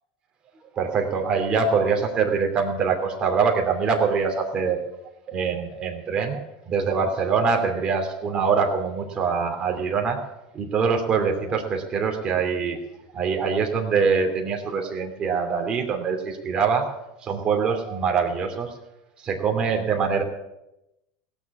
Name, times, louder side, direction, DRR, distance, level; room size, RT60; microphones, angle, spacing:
voice 1, 0.7-4.8 5.3-10.2 10.5-12.8 13.1-16.8 17.2-18.7 19.2-20.2, right 5 dB, 30° right, 3 dB, 2.8 m, -24 dB
17.0 x 7.2 x 8.4 m, 0.91 s
supercardioid pair, 115°, 3 cm